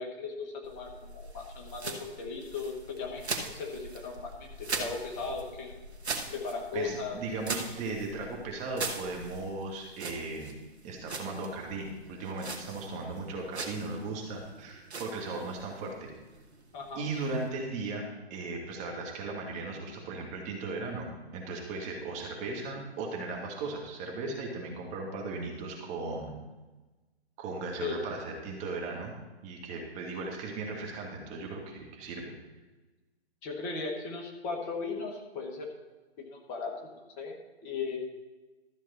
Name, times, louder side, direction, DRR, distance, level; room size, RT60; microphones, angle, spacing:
voice 1, 0.0-4.5 4.7-5.7 6.3-7.2 16.7-17.0 27.8-28.0 33.4-35.7 36.2-38.0, left 4 dB, 25° left, 1 dB, 1.5 m, -37 dB
sound 1, 0.6-17.9, right 3 dB, 75° right, 1.6 m, -42 dB
voice 2, 6.7-10.6 10.8-16.1 17.0-26.4 27.4-29.1 29.4-32.3, right 3 dB, 20° right, 0 dB, 1.7 m, -37 dB
13.0 x 7.2 x 4.2 m, 1.2 s
figure-of-eight pair, 135°, 33 cm